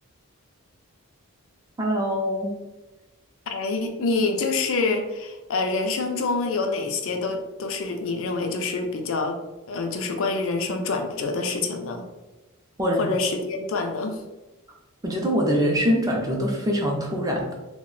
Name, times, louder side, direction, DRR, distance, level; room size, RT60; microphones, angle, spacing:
voice 1, 1.8-2.5 12.8-13.0 15.0-17.5, equal, 15° right, -1 dB, 0.4 m, -23 dB
voice 2, 3.5-9.4 9.7-12.1 13.0-14.2, left 3 dB, 60° left, 4 dB, 0.4 m, -26 dB
2.4 x 2.1 x 3.7 m, 1.1 s
head